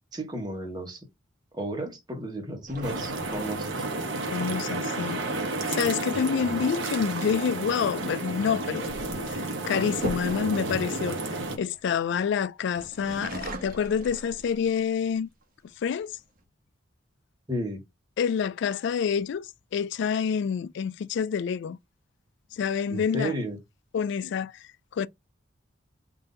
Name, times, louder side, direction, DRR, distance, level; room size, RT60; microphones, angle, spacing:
voice 1, 0.1-1.0 1.5-3.8 17.5-17.8 22.9-23.6, right 1 dB, 20° right, 1.2 m, -33 dB
sound 1, 2.7-4.3 7.2-7.5 8.5-12.2 12.7-14.9 15.4-15.5 15.9-16.4, right 2 dB, 50° right, 1.1 m, -40 dB
sound 2, 2.8-11.6, right 2 dB, 70° right, 1.1 m, -31 dB
voice 2, 4.3-5.2 5.7-9.0 9.3-11.2 11.6-15.3 15.8-16.2 18.2-21.8 22.5-23.3 23.9-25.1, left 7 dB, 65° left, 0.3 m, -28 dB
3.9 x 2.7 x 3.8 m
head